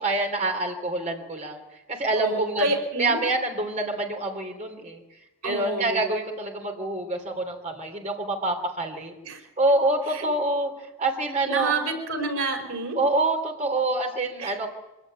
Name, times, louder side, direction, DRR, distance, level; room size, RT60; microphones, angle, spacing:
voice 1, 0.0-1.6 1.9-2.7 3.0-5.0 5.4-9.1 9.6-11.8 12.9-14.7, right 2 dB, 35° right, 3 dB, 3.2 m, -26 dB
voice 2, 2.2-3.2 5.4-6.0 9.2-9.4 10.1-10.3 11.5-13.0 14.4-14.6, right 3 dB, 85° right, 3 dB, 5.5 m, -28 dB
24.5 x 16.5 x 9.4 m, 1.1 s
head